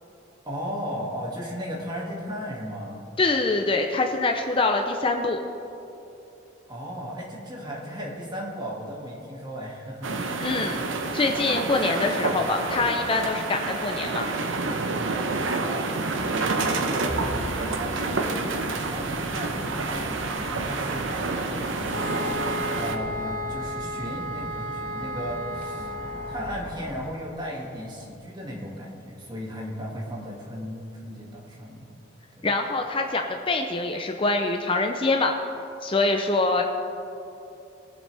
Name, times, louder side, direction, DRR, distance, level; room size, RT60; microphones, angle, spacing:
voice 1, 0.5-3.0 6.7-10.2 15.5-17.1 17.6-22.0 22.7-25.9 26.3-31.9 32.4-32.5, equal, 25° right, -3 dB, 2.2 m, -36 dB
voice 2, 3.2-5.4 10.4-10.8 11.1-14.3 32.4-35.3 35.8-36.6, left 3 dB, 30° left, 3 dB, 0.6 m, -24 dB
sound 1, 10.0-23.0, right 3 dB, 85° right, 0.9 m, -28 dB
sound 2, 17.1-27.1, equal, 10° left, 0.9 m, -39 dB
sound 3, 21.9-26.6, left 1 dB, 50° right, 0.9 m, -33 dB
21.5 x 7.6 x 3.4 m, 2.9 s
head